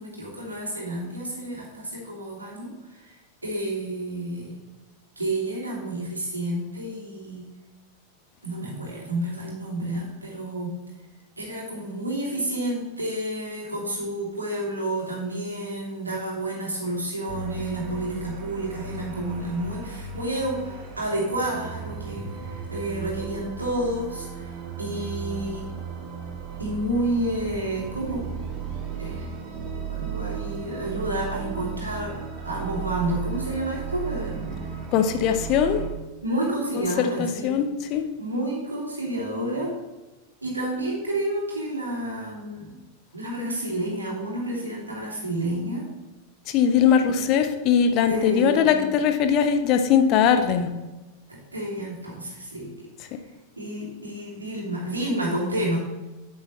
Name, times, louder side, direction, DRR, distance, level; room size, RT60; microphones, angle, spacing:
voice 1, 0.0-3.1 3.4-4.6 5.2-7.5 8.4-10.8 11.4-24.5 24.8-25.7 26.6-28.3 29.0-29.3 29.9-34.7 36.2-37.5 38.2-39.7 40.4-42.8 43.1-45.9 48.1-49.0 51.3-52.9 53.6-55.8, right 1 dB, 80° right, -4 dB, 2.7 m, -30 dB
sound 1, 17.3-35.9, right 6 dB, 35° right, 1.6 m, -35 dB
voice 2, 34.9-35.8 36.8-36.9 37.2-38.1 46.5-50.7, left 7 dB, 40° left, 7 dB, 0.9 m, -21 dB
8.6 x 8.3 x 3.2 m, 1.1 s
figure-of-eight pair, 90°, 0 cm